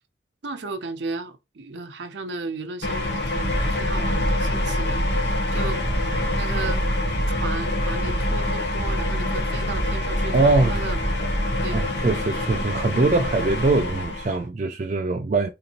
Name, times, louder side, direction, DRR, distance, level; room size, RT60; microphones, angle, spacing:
voice 1, 0.4-5.0 5.5-5.8 6.4-6.8 7.3-11.0 11.6-12.0, right 3 dB, 75° right, 0.7 m, -34 dB
sound 1, 2.8-14.4, left 2 dB, 70° left, 0.8 m, -27 dB
sound 2, 3.4-12.5, right 1 dB, 20° left, 1.0 m, -28 dB
voice 2, 10.3-10.8 11.7-15.5, right 3 dB, 40° right, 0.3 m, -22 dB
3.9 x 2.6 x 2.8 m
head